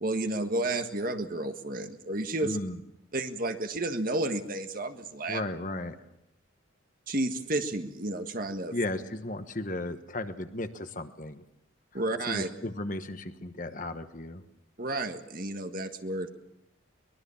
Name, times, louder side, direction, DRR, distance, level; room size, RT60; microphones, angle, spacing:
voice 1, 0.0-2.6 3.1-5.4 7.1-8.7 11.9-12.5 14.8-16.3, right 2 dB, 45° right, 7 dB, 1.6 m, -31 dB
voice 2, 2.4-2.8 5.3-6.0 8.7-11.4 12.3-14.4, left 2 dB, 40° left, 9 dB, 1.3 m, -35 dB
23.5 x 21.0 x 7.2 m, 0.85 s
head